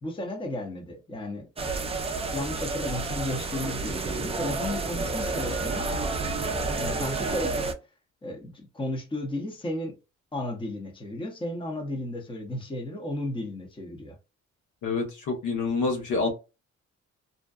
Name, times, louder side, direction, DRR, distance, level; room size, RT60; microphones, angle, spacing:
voice 1, 0.0-5.9 6.8-7.7 8.2-10.0 10.3-14.1, left 1 dB, 15° left, 0.8 m, -34 dB
sound 1, 1.6-7.7, right 3 dB, 20° right, 0.4 m, -30 dB
voice 2, 14.8-16.3, left 3 dB, 80° left, 1.0 m, -27 dB
2.6 x 2.1 x 2.3 m
cardioid pair, 90°, 30 cm